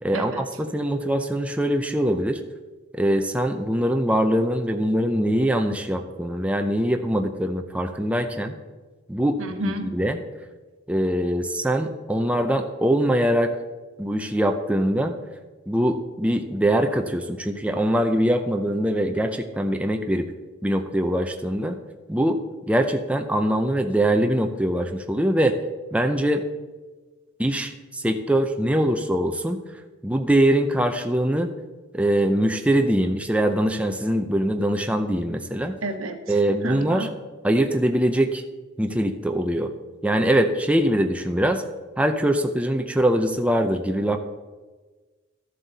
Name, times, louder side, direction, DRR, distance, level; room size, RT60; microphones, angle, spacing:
voice 1, 0.0-2.4 2.9-8.6 9.1-10.2 10.9-13.5 14.0-15.1 15.7-20.3 20.6-21.8 22.1-22.4 22.7-25.6 25.9-26.5 27.4-29.6 30.0-31.5 31.9-35.8 36.3-37.1 37.4-38.4 38.8-39.7 40.0-41.6 42.0-44.2, right 1 dB, 5° right, 5 dB, 0.5 m, -23 dB
voice 2, 9.4-9.8 35.8-37.1, right 1 dB, 85° right, 6 dB, 1.1 m, -31 dB
13.0 x 7.6 x 4.0 m, 1.3 s
head